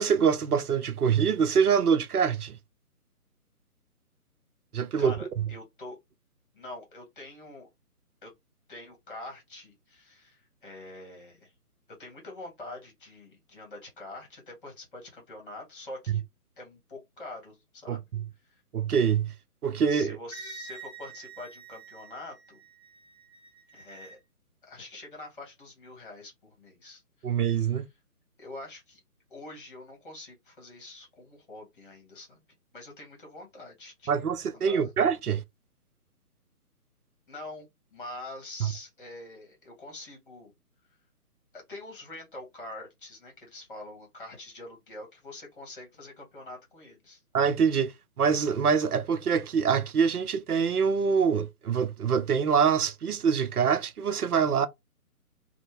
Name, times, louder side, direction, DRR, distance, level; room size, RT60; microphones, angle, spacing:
voice 1, 0.0-2.6 4.7-5.4 16.1-16.2 17.9-18.2 18.7-19.3 19.6-20.2 27.2-27.8 34.1-35.4 38.6-38.7 47.3-54.7, right 6 dB, 80° right, 0.5 m, -25 dB
voice 2, 5.0-6.0 6.5-7.7 8.2-8.3 8.7-11.5 12.0-16.2 16.6-18.1 18.4-18.6 19.9-22.6 23.7-24.2 24.6-27.8 28.4-29.0 29.3-32.4 32.7-34.2 34.5-34.9 37.3-37.7 37.9-40.5 41.5-47.2, left 2 dB, 35° left, 1.2 m, -45 dB
Wind instrument woodwind instrument, 20.3-24.2, right 4 dB, 5° right, 1.2 m, -47 dB
2.6 x 2.2 x 3.2 m
figure-of-eight pair, 145°, 45 cm